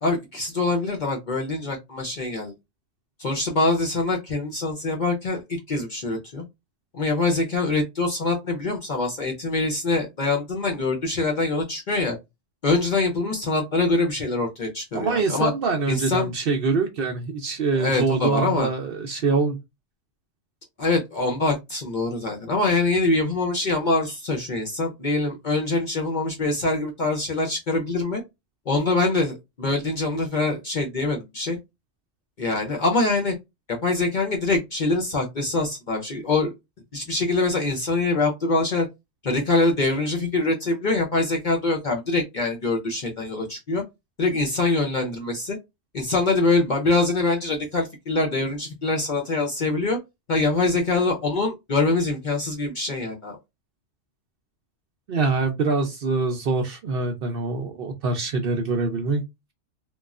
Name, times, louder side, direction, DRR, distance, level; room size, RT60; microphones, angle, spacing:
voice 1, 0.0-2.5 3.2-6.4 6.9-12.2 12.6-15.5 15.9-16.3 17.7-18.7 20.8-28.2 28.7-31.6 32.4-33.3 33.7-36.5 36.9-38.9 39.2-43.8 44.2-45.6 45.9-50.0 50.3-53.4, left 3 dB, 50° left, 1 dB, 0.6 m, -24 dB
voice 2, 14.9-19.6 55.1-59.2, right 4 dB, 60° right, 4 dB, 0.6 m, -24 dB
3.0 x 2.3 x 2.3 m, 0.21 s
omnidirectional pair, 1.3 m